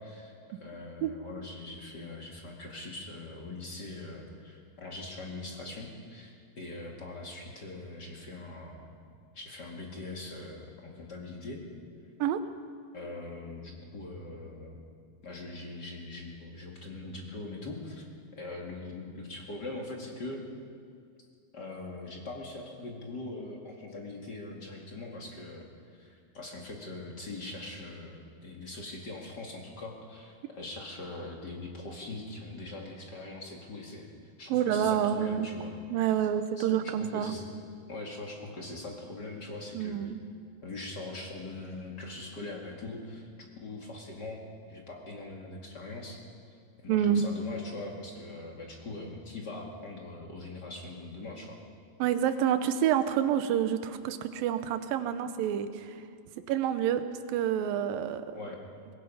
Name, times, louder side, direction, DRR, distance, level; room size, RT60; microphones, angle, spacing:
voice 1, 0.0-8.9 9.3-11.6 12.9-14.8 15.2-18.1 18.3-20.4 21.5-25.6 25.9-35.7 36.0-36.3 36.6-36.7 37.0-37.4 37.9-40.0 40.6-43.3 43.6-44.4 44.7-46.2 46.8-51.6 58.4-58.6, left 2 dB, 35° left, 0 dB, 2.0 m, -42 dB
voice 2, 34.5-35.5 35.9-37.3 39.7-40.2 46.9-47.2 52.0-56.0 56.5-58.4, right 9 dB, 75° right, 10 dB, 2.4 m, -28 dB
23.5 x 20.5 x 5.6 m, 2.3 s
omnidirectional pair, 4.6 m